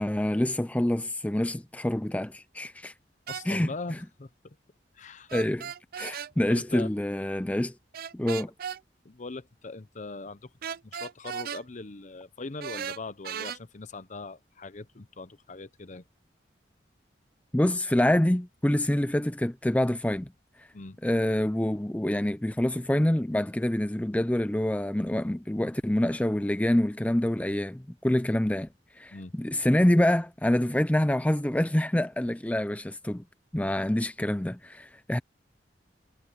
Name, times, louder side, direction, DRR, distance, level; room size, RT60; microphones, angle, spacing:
voice 1, 0.0-2.9 3.5-3.7 5.3-5.7 6.0-7.7 8.1-8.5 17.5-20.3 20.6-20.7 21.0-28.7 29.0-33.2 33.5-35.2, left 1 dB, 10° left, 0.5 m, -26 dB
voice 2, 3.3-4.6 4.9-5.3 5.6-5.7 6.1-6.9 9.0-10.5 10.8-16.0 20.7-21.0 29.1-29.3, left 3 dB, 45° left, 0.8 m, -41 dB
sound 1, 3.3-3.5 5.3-6.3 7.9-8.8 10.6-11.6 12.6-13.6, right 8 dB, 55° right, 0.4 m, -36 dB
head